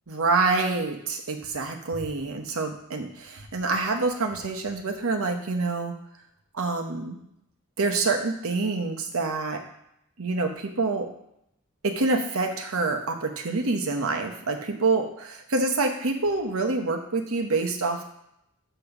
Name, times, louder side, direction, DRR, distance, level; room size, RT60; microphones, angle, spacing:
voice 1, 0.1-5.9 6.5-7.2 7.8-9.6 10.2-11.1 11.8-18.1, right 3 dB, 75° right, 4 dB, 0.9 m, -26 dB
6.7 x 3.0 x 5.9 m, 0.78 s
head